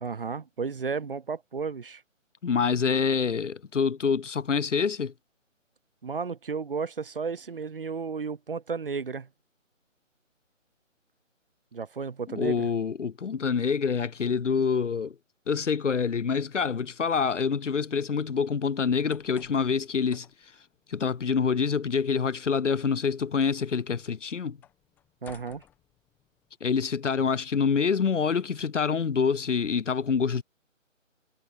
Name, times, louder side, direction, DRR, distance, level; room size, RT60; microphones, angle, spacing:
voice 1, 0.0-2.0 6.0-9.3 11.7-12.7 25.2-25.6, right 5 dB, 45° right, 0.8 m, -33 dB
voice 2, 2.4-5.1 12.3-15.1 15.5-20.3 20.9-24.6 26.6-30.4, left 6 dB, 65° left, 0.7 m, -26 dB
sound 1, 18.8-26.6, left 10 dB, 5° left, 1.3 m, -58 dB
figure-of-eight pair, 150°, 39 cm